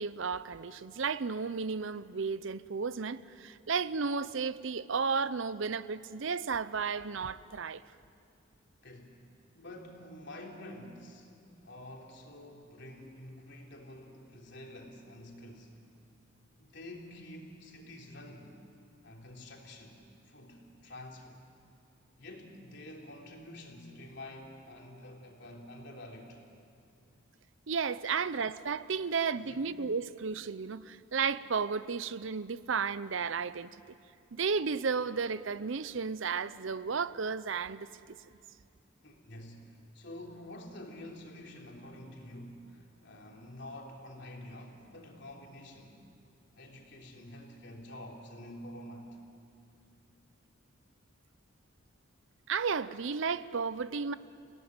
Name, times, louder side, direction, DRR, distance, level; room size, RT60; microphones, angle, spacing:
voice 1, 0.0-7.8 27.7-33.7 34.3-37.9 52.5-54.1, right 5 dB, 65° right, 0.6 m, -33 dB
voice 2, 8.8-11.3 11.6-15.8 16.6-18.6 19.0-20.0 20.3-21.4 22.2-26.4 28.0-28.1 29.4-29.6 39.0-46.0 46.6-49.2, left 1 dB, 55° left, 3.6 m, -48 dB
29.5 x 18.0 x 9.6 m
head